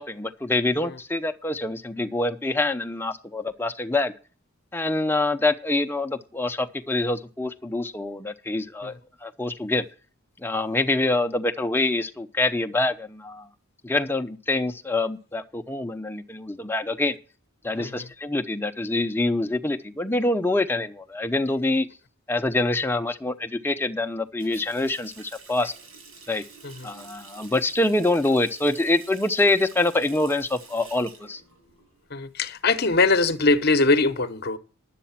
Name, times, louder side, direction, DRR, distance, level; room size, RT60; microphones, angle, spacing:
voice 1, 0.0-4.1 4.7-9.9 10.4-13.5 13.8-17.2 17.6-21.9 22.3-25.7 26.3-26.4 26.8-31.4, left 2 dB, 10° left, 0.7 m, -25 dB
Water tap faucet, 24.4-32.1 32.5-33.5, right 4 dB, 75° right, 7.3 m, -48 dB
voice 2, 32.1-34.6, left 3 dB, 45° left, 0.9 m, -22 dB
11.0 x 8.3 x 5.7 m
head